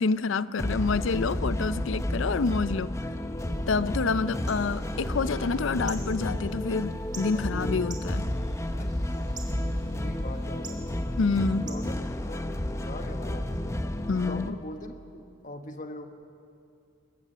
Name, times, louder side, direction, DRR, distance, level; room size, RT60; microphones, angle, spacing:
voice 1, 0.0-3.0 3.7-8.2 11.2-11.7 14.1-14.6, left 4 dB, 70° left, 16 dB, 0.5 m, -28 dB
sound 1, 0.6-14.5, left 1 dB, 15° left, 0.6 m, -31 dB
sound 2, 3.4-12.7, right 4 dB, 20° right, 2.0 m, -50 dB
voice 2, 7.3-7.9 8.8-9.0 9.5-10.9 11.4-12.0 12.3-13.8 14.2-16.1, left 1 dB, 40° left, 7 dB, 1.2 m, -42 dB
21.5 x 18.0 x 6.8 m, 2.5 s
head